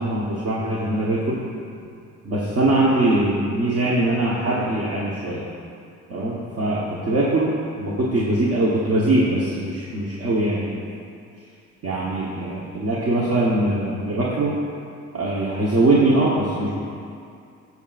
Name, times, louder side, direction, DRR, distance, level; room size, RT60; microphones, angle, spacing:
voice 1, 0.0-1.4 2.2-5.5 6.1-10.8 11.8-14.6 15.1-16.8, right 2 dB, 55° right, -6 dB, 1.1 m, -22 dB
15.0 x 5.9 x 2.5 m, 2.4 s
cardioid pair, 90°, 30 cm